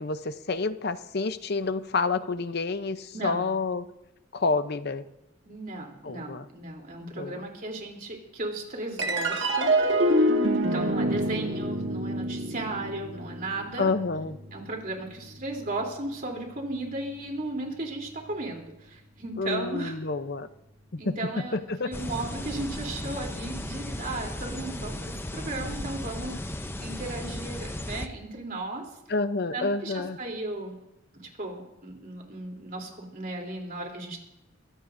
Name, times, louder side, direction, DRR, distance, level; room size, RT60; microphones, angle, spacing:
voice 1, 0.0-3.9 4.3-5.0 6.0-6.5 7.0-7.5 13.8-14.4 19.4-20.5 20.9-21.9 29.1-30.2, left 3 dB, 50° left, 11 dB, 0.7 m, -29 dB
voice 2, 3.1-3.5 5.4-10.3 10.6-13.9 14.5-20.0 21.0-21.6 21.8-28.9 29.5-30.7 31.1-34.2, right 2 dB, 45° right, 0 dB, 3.4 m, -35 dB
sound 1, 9.0-15.7, right 1 dB, 65° right, 1.9 m, -27 dB
sound 2, 21.9-28.1, left 1 dB, 10° left, 0.6 m, -35 dB
23.5 x 16.0 x 2.7 m, 0.92 s
head